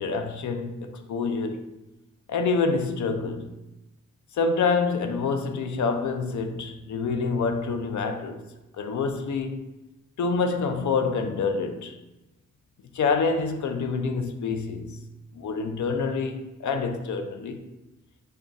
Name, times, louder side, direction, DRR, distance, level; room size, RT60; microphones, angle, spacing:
voice 1, 0.0-1.7 2.3-3.5 4.3-8.4 8.8-9.6 10.2-12.0 12.9-15.0 15.3-17.6, left 4 dB, 70° left, 0.5 m, -27 dB
3.8 x 2.3 x 3.6 m
cardioid pair, 70°, 31 cm